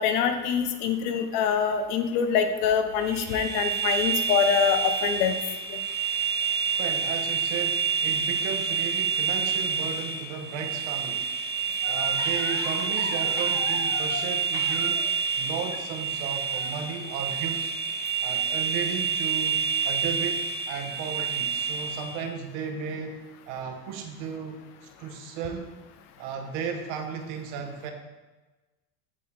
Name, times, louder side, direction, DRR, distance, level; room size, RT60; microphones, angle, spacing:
voice 1, 0.0-5.4 5.7-5.8, left 7 dB, 70° left, 7 dB, 0.9 m, -25 dB
sound 1, 3.0-22.2, right 6 dB, 20° right, 1.3 m, -28 dB
voice 2, 6.8-11.3 11.9-15.1 15.4-17.7 18.2-23.2 23.5-25.7 26.2-27.9, right 6 dB, 65° right, 4 dB, 1.1 m, -35 dB
sound 2, 11.8-15.2 16.5-16.8 17.1-17.2, left 5 dB, 30° left, 0.6 m, -38 dB
7.4 x 4.0 x 3.4 m, 1.2 s
supercardioid pair, 105°, 46 cm